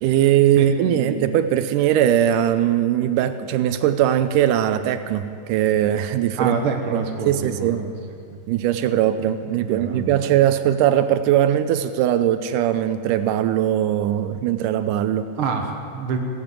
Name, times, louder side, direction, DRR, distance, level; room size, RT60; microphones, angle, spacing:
voice 1, 0.0-6.6 6.9-7.8 8.5-15.3, right 11 dB, 85° right, 11 dB, 2.2 m, -20 dB
voice 2, 0.6-1.3 6.3-7.9 8.3-8.4 9.6-10.2 15.4-16.2, right 5 dB, 60° right, 3 dB, 1.5 m, -27 dB
17.0 x 11.0 x 7.7 m, 2.4 s
omnidirectional pair, 3.7 m